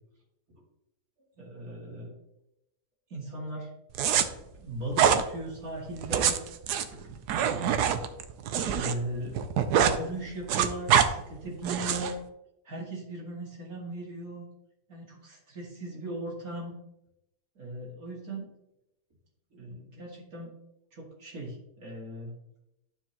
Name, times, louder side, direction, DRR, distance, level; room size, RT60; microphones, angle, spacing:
voice 1, 1.4-2.1 3.1-3.7 4.6-6.4 6.9-7.1 8.7-9.4 9.8-12.2 12.6-14.4 14.9-16.8 17.6-18.5 19.5-20.5 20.9-22.4, right 1 dB, 65° right, -3 dB, 2.7 m, -38 dB
sound 1, 3.9-4.2 4.9-5.2 6.0-8.9 9.2-10.0 10.3-11.1 11.6-12.1, right 8 dB, 90° right, 1.2 m, -24 dB
12.0 x 4.7 x 2.9 m, 0.84 s
omnidirectional pair, 1.7 m